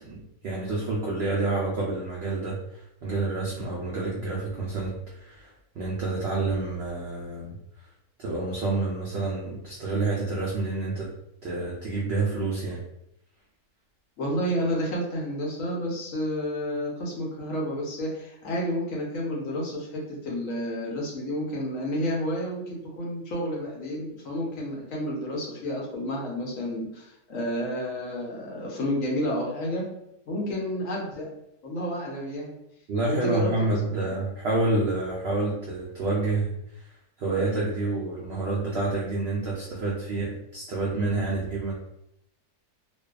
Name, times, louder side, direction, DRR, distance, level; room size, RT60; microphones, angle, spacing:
voice 1, 0.0-7.6 8.2-11.1 11.4-12.8 32.9-36.9 37.2-41.7, right 2 dB, 85° right, -4 dB, 0.5 m, -28 dB
voice 2, 14.2-29.8 30.3-31.3 31.6-32.5 33.1-34.1, equal, 65° left, -3 dB, 1.0 m, -30 dB
2.5 x 2.3 x 2.3 m, 0.80 s
omnidirectional pair, 1.6 m